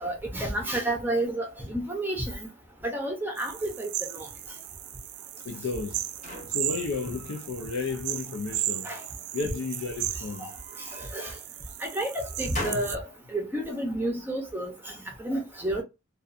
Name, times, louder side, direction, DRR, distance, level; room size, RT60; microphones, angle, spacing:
voice 1, 0.0-2.4 2.8-4.3 8.8-9.0 10.4-10.5 10.9-11.4 11.8-15.8, right 1 dB, 10° right, 0.6 m, -31 dB
sound 1, 3.4-12.9, right 14 dB, 80° right, 0.3 m, -36 dB
voice 2, 5.4-6.1 6.5-8.9 9.3-10.5 12.7-12.8, left 4 dB, 75° left, 0.5 m, -33 dB
sound 2, 5.5-7.5 7.9-8.7 9.6-11.1 11.7-13.0, left 1 dB, 35° left, 0.9 m, -42 dB
2.5 x 2.3 x 2.4 m
head